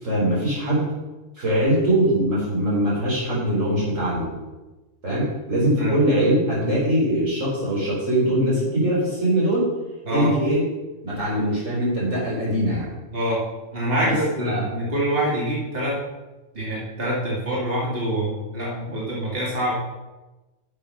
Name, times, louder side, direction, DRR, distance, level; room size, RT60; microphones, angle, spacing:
voice 1, 0.0-0.9 1.4-4.4 5.0-9.7 10.1-10.6 11.0-12.9 14.0-14.6, right 1 dB, 90° right, -5 dB, 4.2 m, -22 dB
voice 2, 13.1-13.4 13.7-16.0 16.5-19.7, right 1 dB, 50° right, -5 dB, 2.6 m, -25 dB
10.5 x 6.9 x 5.3 m, 1.1 s
omnidirectional pair, 1.3 m